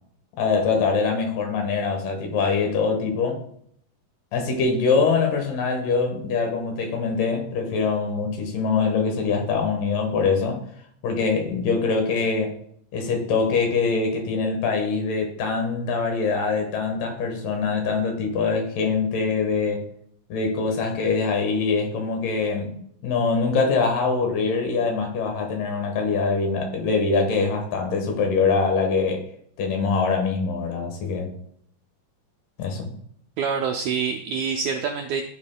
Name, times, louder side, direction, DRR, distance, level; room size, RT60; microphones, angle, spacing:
voice 1, 0.4-3.4 4.3-10.6 11.0-12.6 12.9-19.8 20.3-29.3 29.6-31.3 32.6-32.9, left 4 dB, 75° left, 2.8 m, -23 dB
voice 2, 33.4-35.2, right 6 dB, 80° right, 1.7 m, -26 dB
12.5 x 5.4 x 2.2 m
omnidirectional pair, 3.8 m